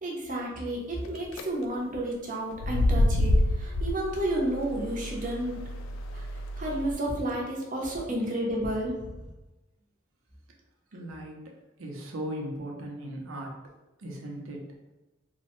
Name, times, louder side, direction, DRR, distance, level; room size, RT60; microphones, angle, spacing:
voice 1, 0.0-5.6 6.1-6.2 6.6-9.1, right 1 dB, 40° right, -2 dB, 0.6 m, -31 dB
sound 1, 1.0-1.4 2.5-6.9, left 1 dB, 85° left, 0.3 m, -28 dB
voice 2, 10.9-13.5 14.0-14.7, equal, 90° right, 1 dB, 0.6 m, -38 dB
3.1 x 2.1 x 3.0 m, 1.0 s
head